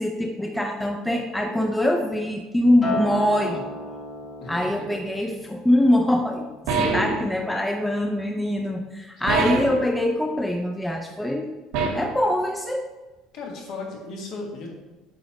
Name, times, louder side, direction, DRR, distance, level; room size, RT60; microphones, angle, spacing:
voice 1, 0.0-3.6 4.5-11.5 11.9-12.8, left 1 dB, 5° left, 2 dB, 0.4 m, -23 dB
Acoustic guitar, 2.8-7.2 7.6-8.0, left 2 dB, 25° left, 1.1 m, -35 dB
voice 2, 4.4-5.0 13.3-14.7, left 3 dB, 55° left, 0 dB, 1.7 m, -36 dB
sound 1, 6.7-7.3 9.3-9.8 11.7-12.2, right 4 dB, 85° right, 1.6 m, -24 dB
9.0 x 5.2 x 3.0 m, 1.1 s
cardioid pair, 165°, 0 cm